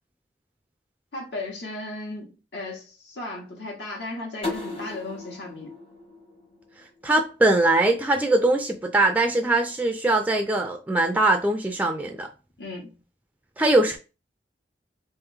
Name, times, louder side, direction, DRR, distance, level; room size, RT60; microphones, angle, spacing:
voice 1, 1.1-5.7 12.6-13.0, left 2 dB, 75° left, 1.4 m, -36 dB
sound 1, 4.4-7.2, left 2 dB, 35° left, 1.1 m, -36 dB
voice 2, 7.0-12.3 13.6-14.0, right 2 dB, 10° right, 0.3 m, -21 dB
3.4 x 2.9 x 3.5 m
head